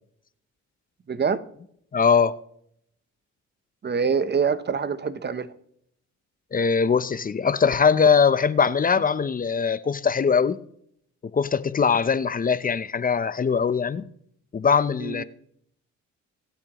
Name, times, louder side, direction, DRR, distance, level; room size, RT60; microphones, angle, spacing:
voice 1, 1.1-1.4 3.8-5.5 15.0-15.2, right 6 dB, 35° right, 0.8 m, -25 dB
voice 2, 1.9-2.4 6.5-10.6 11.3-14.1 14.5-15.2, left 6 dB, 30° left, 0.6 m, -21 dB
24.5 x 8.5 x 3.0 m
cardioid pair, 90°, 30 cm